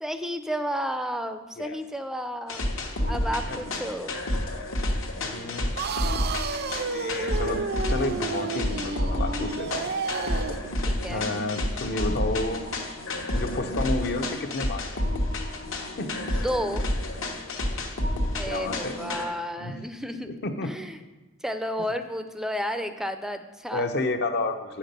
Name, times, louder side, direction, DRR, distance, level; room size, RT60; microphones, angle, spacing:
voice 1, 0.0-2.7 3.1-4.2 10.9-11.2 16.3-16.8 18.3-20.3 20.6-21.0 21.4-23.9, equal, ahead, 9 dB, 0.5 m, -32 dB
sound 1, 2.5-19.3, left 1 dB, 70° left, 1.3 m, -30 dB
voice 2, 5.2-5.7 6.9-7.6 7.9-9.9 11.1-12.6 13.3-15.0 15.9-16.1 18.5-19.0 19.6-19.9 20.3-20.7 23.7-24.8, left 2 dB, 55° left, 7 dB, 0.8 m, -30 dB
sound 2, 5.8-10.7, right 5 dB, 50° right, 0.5 m, -31 dB
8.6 x 5.8 x 6.7 m, 1.1 s
head